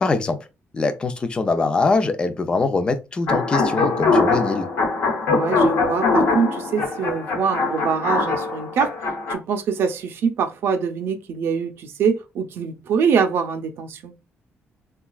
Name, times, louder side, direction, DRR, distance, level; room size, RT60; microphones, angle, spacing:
voice 1, 0.0-0.4 0.7-4.7, left 3 dB, 20° left, 0.4 m, -22 dB
sound 1, 3.3-9.3, left 3 dB, 60° left, 1.0 m, -22 dB
voice 2, 5.3-8.9 9.3-14.1, right 6 dB, 65° right, 0.5 m, -24 dB
3.9 x 2.3 x 2.2 m
cardioid pair, 175°, 4 cm